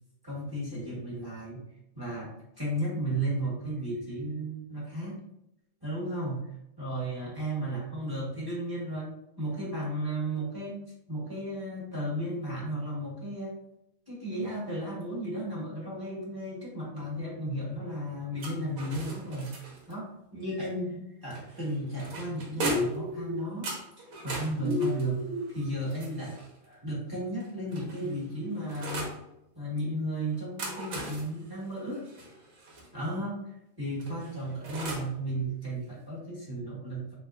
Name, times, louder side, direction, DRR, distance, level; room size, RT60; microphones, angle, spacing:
voice 1, 0.2-1.6 1.9-5.2 5.8-6.5 6.8-10.8 11.1-13.5 14.1-19.5 19.9-25.2 25.5-29.1 29.5-32.0 32.9-37.1, right 1 dB, 15° right, -6 dB, 1.5 m, -34 dB
sound 1, 18.4-19.9 21.3-23.1 23.6-26.6 27.4-29.2 30.3-32.9 34.0-35.2, right 3 dB, 80° right, 1.3 m, -39 dB
sound 2, 22.5-23.5 24.6-25.5, left 2 dB, 50° right, 1.4 m, -31 dB
3.9 x 3.2 x 2.5 m, 0.85 s
omnidirectional pair, 1.5 m